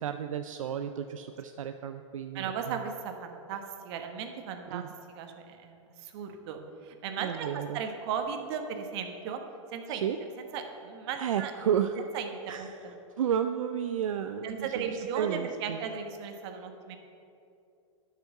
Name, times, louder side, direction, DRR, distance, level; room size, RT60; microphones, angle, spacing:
voice 1, 0.0-2.5 4.7-4.9 7.2-7.8 9.9-10.2 11.2-12.0 12.5-12.7 13.2-15.8, right 9 dB, 80° right, 8 dB, 0.5 m, -32 dB
voice 2, 2.3-9.4 9.7-11.5 12.1-12.9 14.4-17.0, right 7 dB, 55° right, 5 dB, 1.2 m, -37 dB
10.5 x 5.7 x 6.6 m, 2.7 s
hypercardioid pair, 115°, 17 cm